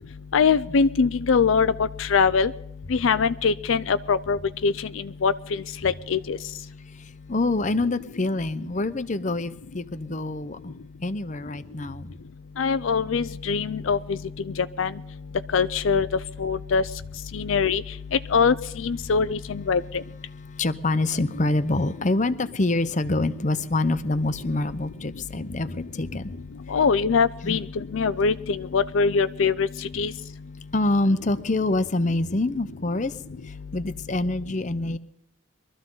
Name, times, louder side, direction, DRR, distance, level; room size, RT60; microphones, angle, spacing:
voice 1, 0.3-2.5 2.9-4.7 5.2-6.4 12.6-14.2 14.8-14.9 15.5-16.1 16.4-16.8 17.3-17.8 18.3-18.5 18.8-20.0 26.7-29.7 29.9-30.1, left 5 dB, 75° left, 12 dB, 0.5 m, -22 dB
voice 2, 6.9-12.1 20.5-26.3 27.4-27.6 30.7-33.2 33.4-35.0, left 2 dB, 35° left, 12 dB, 0.8 m, -26 dB
23.0 x 13.5 x 3.9 m, 0.77 s
head